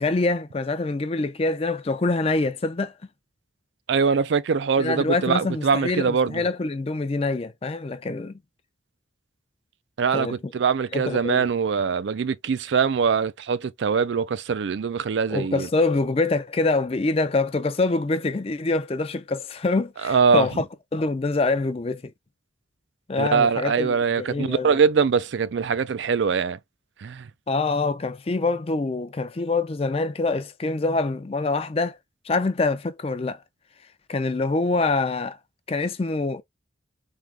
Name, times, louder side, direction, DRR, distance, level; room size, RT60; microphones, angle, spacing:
voice 1, 0.0-2.9 4.8-8.4 10.1-10.5 10.9-11.4 15.3-20.7 20.9-22.1 23.1-24.8 27.5-32.0 32.3-33.4 34.1-35.4 35.7-36.4, left 3 dB, 30° left, 0.4 m, -25 dB
voice 2, 3.9-6.4 10.0-15.7 20.0-20.5 23.2-26.6 27.0-27.3, right 6 dB, 70° right, 0.4 m, -23 dB
3.7 x 2.8 x 3.4 m
head